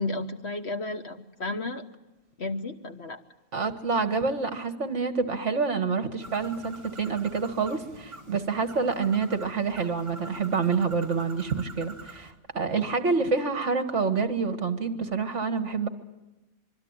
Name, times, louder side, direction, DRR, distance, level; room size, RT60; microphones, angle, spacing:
voice 1, 0.0-1.8 2.4-3.2, left 2 dB, 50° left, 7 dB, 1.5 m, -32 dB
voice 2, 3.5-15.9, right 5 dB, 55° right, 8 dB, 2.0 m, -27 dB
Bird, 6.2-12.3, right 2 dB, 20° right, 2.0 m, -46 dB
25.5 x 23.5 x 8.9 m, 1.0 s
omnidirectional pair, 1.5 m